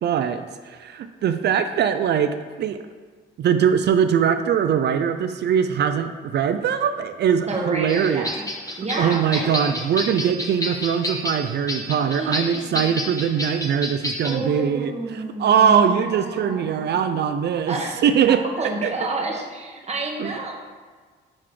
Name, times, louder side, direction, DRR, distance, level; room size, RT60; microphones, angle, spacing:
voice 1, 0.0-2.8 3.4-8.3 8.7-17.8 18.0-18.4 18.8-18.9 20.2-20.3, right 8 dB, 60° right, 9 dB, 0.4 m, -21 dB
voice 2, 7.5-8.5 8.8-9.6 12.1-13.0 14.2-16.9 17.7-18.0 18.6-20.5, right 2 dB, 35° right, 0 dB, 1.4 m, -29 dB
sound 1, 7.9-14.4, left 1 dB, 15° left, 1.0 m, -30 dB
9.9 x 4.0 x 3.2 m, 1.5 s
cardioid pair, 90°, 20 cm